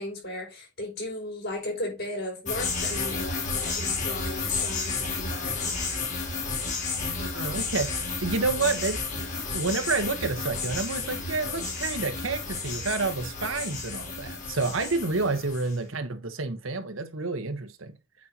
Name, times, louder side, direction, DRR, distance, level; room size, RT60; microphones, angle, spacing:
voice 1, 0.0-5.8, left 2 dB, 55° left, 5.2 m, -35 dB
sound 1, 2.5-15.7, left 4 dB, 40° left, 3.3 m, -32 dB
voice 2, 7.0-7.9 8.2-9.3 9.5-17.9, right 3 dB, 80° right, 1.3 m, -29 dB
8.6 x 5.6 x 2.9 m
head